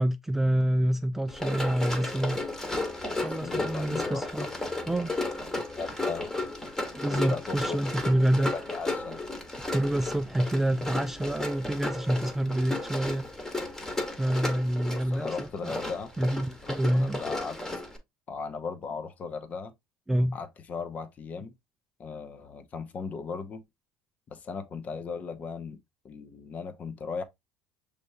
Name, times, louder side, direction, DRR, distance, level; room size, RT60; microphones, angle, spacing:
voice 1, 0.0-2.4 3.1-4.5 4.9-5.1 6.9-8.5 9.7-13.2 14.1-15.8 16.2-17.2 20.1-20.4, right 1 dB, 10° right, 0.4 m, -27 dB
Run, 1.3-18.0, left 2 dB, 10° left, 1.3 m, -34 dB
voice 2, 3.4-4.5 5.7-6.3 7.1-7.8 8.4-9.2 14.9-16.1 16.6-17.6 18.3-19.7 20.3-21.5 22.0-23.6 24.3-25.8 26.0-27.2, left 5 dB, 40° left, 0.8 m, -37 dB
6.1 x 3.3 x 2.6 m
cardioid pair, 115°, 4 cm